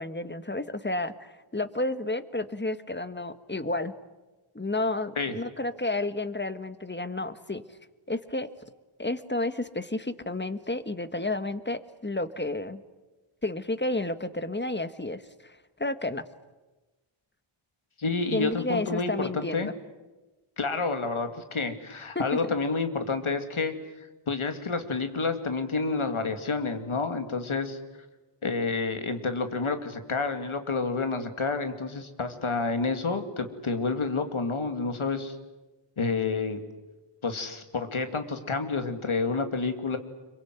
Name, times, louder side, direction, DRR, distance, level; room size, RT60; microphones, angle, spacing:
voice 1, 0.0-3.9 4.5-7.6 8.1-8.5 9.0-12.8 13.4-16.2 18.3-19.7 22.1-22.5, left 2 dB, 20° left, 12 dB, 1.5 m, -31 dB
voice 2, 18.0-19.7 20.6-23.7 24.3-27.8 28.4-35.3 36.0-36.6 37.2-40.0, left 4 dB, 75° left, 8 dB, 2.6 m, -29 dB
26.5 x 23.5 x 9.5 m, 1.2 s
wide cardioid pair, 65°, 50 cm